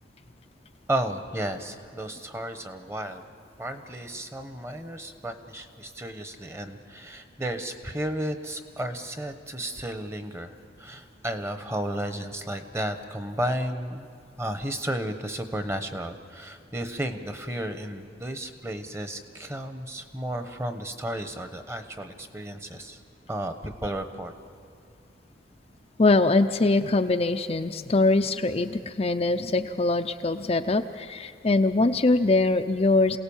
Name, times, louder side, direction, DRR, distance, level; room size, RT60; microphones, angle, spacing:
voice 1, 0.9-3.2 3.6-14.1 14.4-23.0 23.3-24.3, right 1 dB, 15° right, 8 dB, 1.0 m, -33 dB
voice 2, 26.0-33.2, left 2 dB, 30° left, 6 dB, 0.5 m, -23 dB
27.5 x 17.5 x 7.2 m, 2.4 s
head